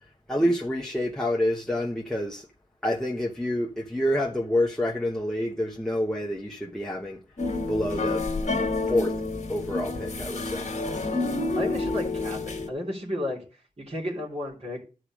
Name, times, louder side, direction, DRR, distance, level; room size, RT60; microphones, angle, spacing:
voice 1, 0.3-2.4 2.8-7.2 7.7-8.2 8.8-9.1 9.5-10.7, left 1 dB, 5° left, 1.1 m, -27 dB
sound 1, 7.4-12.7, left 2 dB, 55° left, 1.7 m, -29 dB
voice 2, 11.5-14.8, left 1 dB, 45° right, 3.1 m, -33 dB
12.0 x 4.9 x 6.2 m
wide cardioid pair, 90°, 14 cm